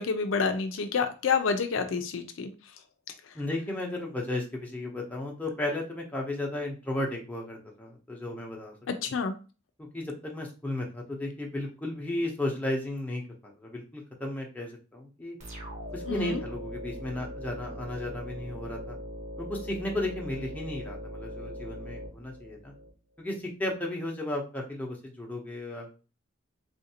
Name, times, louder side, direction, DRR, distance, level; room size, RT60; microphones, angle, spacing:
voice 1, 0.0-2.5 8.9-9.3 16.1-16.4, left 5 dB, 75° left, 7 dB, 0.4 m, -28 dB
voice 2, 3.3-8.7 9.8-13.2 13.6-15.4 15.9-19.0 19.4-22.7 23.2-25.9, left 1 dB, 10° left, -1 dB, 0.7 m, -34 dB
sound 1, 15.4-22.9, equal, 40° right, 1.1 m, -40 dB
3.5 x 2.5 x 2.7 m, 0.33 s
head